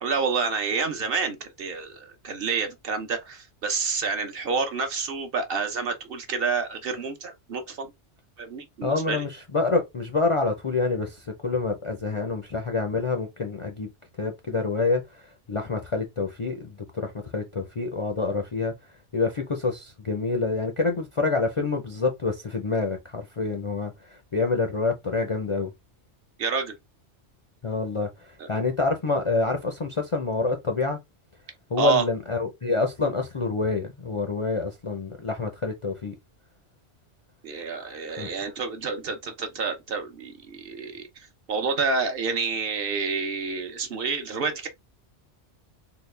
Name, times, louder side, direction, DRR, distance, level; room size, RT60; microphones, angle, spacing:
voice 1, 0.0-7.9 8.4-9.2 26.4-26.7 28.4-28.5 31.8-32.0 37.4-41.1 41.5-44.7, right 5 dB, 60° right, 0.9 m, -28 dB
voice 2, 8.8-13.9 14.2-18.7 19.1-25.7 27.6-31.0 31.7-36.2 38.2-38.3, left 3 dB, 45° left, 0.4 m, -27 dB
3.9 x 2.1 x 3.2 m
omnidirectional pair, 1.2 m